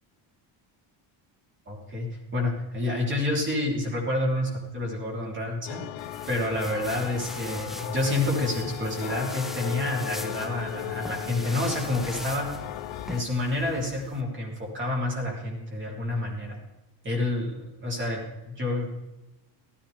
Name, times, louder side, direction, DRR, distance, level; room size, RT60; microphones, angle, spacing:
voice 1, 1.7-5.8 6.3-12.5 13.1-16.6 17.0-18.9, left 1 dB, 25° right, -2 dB, 3.5 m, -29 dB
sound 1, 5.7-13.2, left 13 dB, 70° left, 0.8 m, -36 dB
sound 2, 6.0-14.2, equal, ahead, 0.4 m, -42 dB
15.5 x 12.5 x 3.5 m, 1.0 s
cardioid pair, 150°, 48 cm